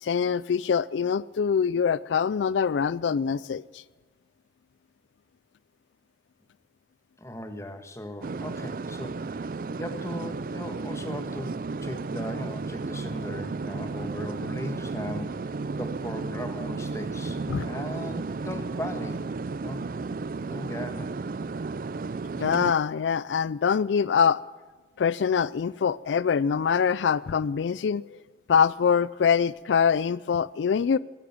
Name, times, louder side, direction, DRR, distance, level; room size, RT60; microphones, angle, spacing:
voice 1, 0.0-3.8 17.5-17.7 22.4-24.4 25.0-28.2 28.5-31.0, left 6 dB, 90° left, 0.4 m, -24 dB
voice 2, 7.2-9.5 9.8-11.5 11.8-15.5 15.8-19.2 19.6-19.8 20.5-21.1, left 1 dB, 15° left, 1.4 m, -38 dB
sound 1, 8.2-22.7, right 4 dB, 50° right, 0.4 m, -33 dB
14.5 x 10.0 x 9.4 m
head